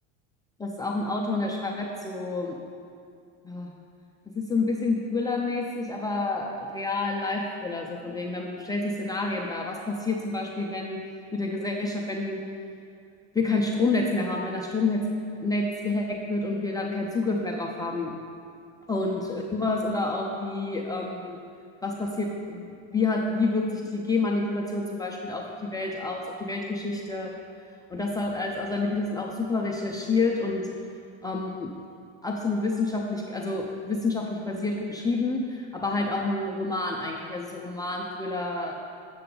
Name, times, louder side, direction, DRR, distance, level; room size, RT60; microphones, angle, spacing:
voice 1, 0.6-2.6 3.4-3.7 4.3-11.0 11.3-12.4 13.3-15.0 15.4-18.1 18.9-21.4 21.8-27.3 27.9-30.7 31.2-31.7 32.2-38.7, left 3 dB, 10° left, -1 dB, 0.4 m, -28 dB
7.7 x 6.8 x 3.8 m, 2.4 s
supercardioid pair, 125°, 33 cm